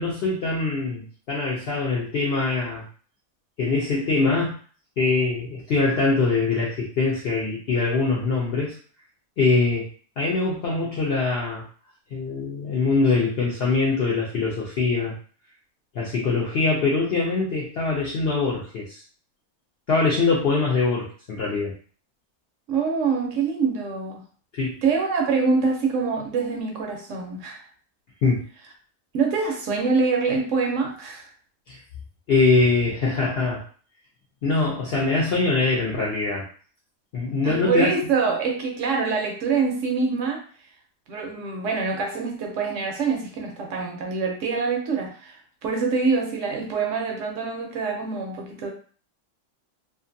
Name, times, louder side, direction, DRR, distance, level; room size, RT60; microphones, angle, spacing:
voice 1, 0.0-2.9 3.6-4.6 5.0-8.8 9.4-9.9 10.2-11.6 12.1-15.1 15.9-19.0 19.9-21.7 24.5-24.8 28.2-28.4 31.7-31.8 32.3-33.7 34.4-36.5 37.1-37.9, left 3 dB, 65° left, -4 dB, 0.6 m, -23 dB
voice 2, 22.7-24.2 24.8-27.6 29.1-31.3 37.4-40.4 41.1-45.4 45.6-48.7, right 4 dB, 65° right, 2 dB, 0.8 m, -25 dB
2.5 x 2.5 x 2.5 m, 0.43 s
omnidirectional pair, 1.5 m